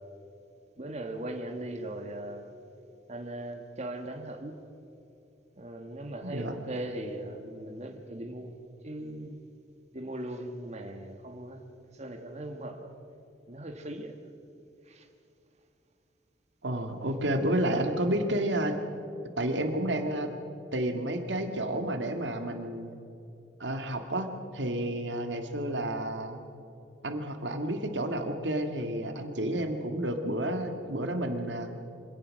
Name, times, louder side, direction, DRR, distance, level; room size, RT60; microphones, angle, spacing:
voice 1, 0.8-2.5 3.1-4.6 5.5-9.4 9.9-11.6 11.9-13.0 13.5-14.1 14.9-15.1, right 1 dB, 40° right, 4 dB, 1.7 m, -39 dB
voice 2, 6.2-6.5 16.6-18.7 19.4-20.3 20.7-22.9 23.6-26.4 27.0-31.7, right 1 dB, 90° right, 6 dB, 2.0 m, -30 dB
25.0 x 17.5 x 6.5 m, 2.7 s
head